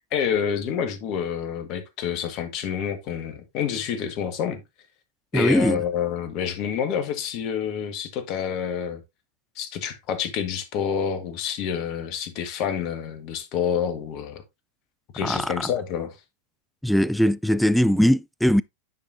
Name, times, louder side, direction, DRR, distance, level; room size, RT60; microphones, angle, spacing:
voice 1, 0.1-4.6 5.3-9.0 9.6-14.4 15.1-16.1, left 8 dB, 40° left, 1.4 m, -28 dB
voice 2, 5.3-5.8 15.2-15.7 16.8-18.6, equal, ahead, 0.3 m, -20 dB
9.5 x 5.1 x 2.5 m
figure-of-eight pair, 90°, 0 cm